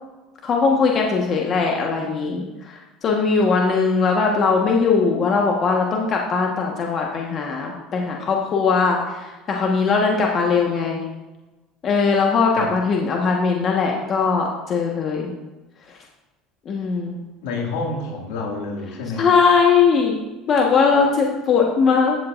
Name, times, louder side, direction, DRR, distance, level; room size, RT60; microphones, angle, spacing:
voice 1, 0.4-11.0 11.8-15.3 16.6-17.2 19.2-20.2 20.5-22.2, left 5 dB, 45° left, 0 dB, 1.3 m, -20 dB
voice 2, 17.4-19.4, left 3 dB, 75° left, 0 dB, 2.1 m, -28 dB
15.0 x 7.7 x 2.6 m, 1.1 s
hypercardioid pair, 75°, 0 cm